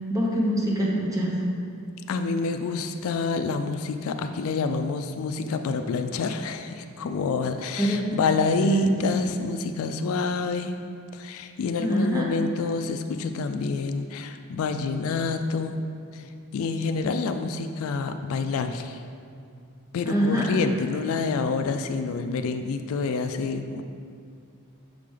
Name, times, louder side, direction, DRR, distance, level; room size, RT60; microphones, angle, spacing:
voice 1, 0.1-1.3 7.8-8.0 8.6-9.1 11.8-12.3 20.1-20.5, equal, 15° right, -3 dB, 0.9 m, -24 dB
voice 2, 2.1-10.7 11.1-15.8 16.1-16.2 16.5-19.0 19.9-23.8, left 4 dB, 65° left, 8 dB, 0.3 m, -27 dB
6.6 x 4.9 x 3.7 m, 2.3 s
head